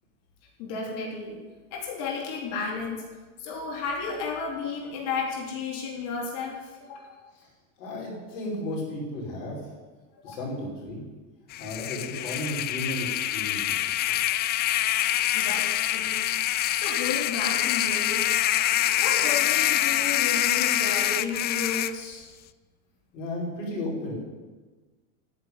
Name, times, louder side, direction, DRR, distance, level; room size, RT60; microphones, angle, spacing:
voice 1, 0.6-1.4 1.7-3.0 3.4-7.2 10.2-10.4 15.3-16.2 16.7-22.3, left 4 dB, 55° left, -1 dB, 3.8 m, -33 dB
voice 2, 7.8-9.6 10.2-11.0 11.6-14.4 23.1-24.1, left 1 dB, 70° left, -3 dB, 5.6 m, -34 dB
sound 1, 11.5-21.9, left 13 dB, 25° left, 0.4 m, -25 dB
10.5 x 8.4 x 9.6 m, 1.3 s
supercardioid pair, 115°, 39 cm